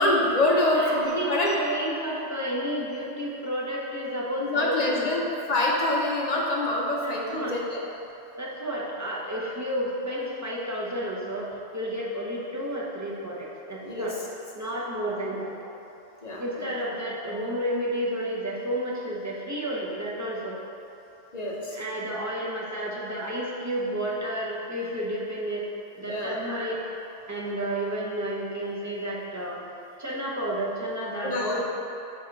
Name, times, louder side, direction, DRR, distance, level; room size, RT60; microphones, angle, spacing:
voice 1, 0.0-1.5 4.4-5.2 5.5-7.8 13.8-14.1 16.2-16.7 21.3-21.8 26.1-26.4 31.2-31.6, left 1 dB, 40° left, -3 dB, 0.7 m, -25 dB
voice 2, 0.7-5.1 7.0-7.6 8.4-14.2 14.6-15.5 16.4-20.6 21.7-25.6 26.0-26.8 27.3-29.6 30.0-31.6, equal, 20° right, -5 dB, 0.6 m, -31 dB
6.5 x 2.9 x 5.2 m, 3.0 s
omnidirectional pair, 1.2 m